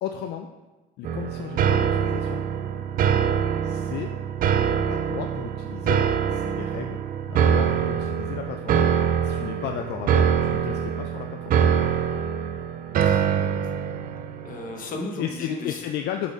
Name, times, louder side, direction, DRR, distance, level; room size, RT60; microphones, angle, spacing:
voice 1, 0.0-0.5 1.0-2.4 3.6-4.1 4.7-8.8 9.2-11.6 15.2-16.3, left 10 dB, 75° left, 5 dB, 0.5 m, -34 dB
sound 1, 1.0-15.0, right 8 dB, 55° right, 0.5 m, -24 dB
voice 2, 13.0-13.7 14.0-14.1 14.4-15.8, left 2 dB, 55° left, 3 dB, 1.1 m, -35 dB
6.6 x 4.1 x 4.8 m, 1.1 s
cardioid pair, 110°, 17 cm